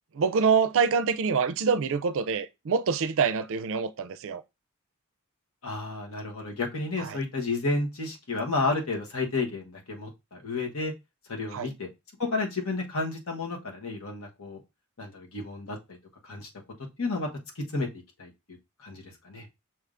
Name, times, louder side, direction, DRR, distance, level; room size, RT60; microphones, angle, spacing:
voice 1, 0.1-4.4 7.0-7.2 11.5-11.7, right 5 dB, 60° right, 0.4 m, -26 dB
voice 2, 5.6-10.9 11.3-11.9 12.2-14.6 15.0-16.0 16.2-16.5 17.0-17.3 17.5-17.9 18.2-18.3 18.8-19.5, left 3 dB, 65° left, 1.2 m, -31 dB
6.0 x 3.4 x 2.5 m
head